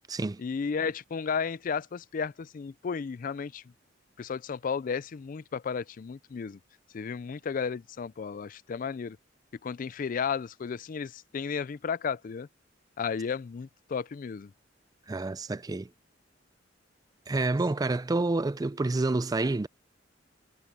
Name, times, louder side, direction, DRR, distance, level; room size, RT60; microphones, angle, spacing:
voice 1, 0.4-3.6 4.2-6.6 6.9-9.2 9.6-12.5 13.0-14.5, left 6 dB, 45° left, 0.4 m, -33 dB
voice 2, 15.1-15.9 17.3-19.7, right 2 dB, 20° right, 0.4 m, -28 dB
head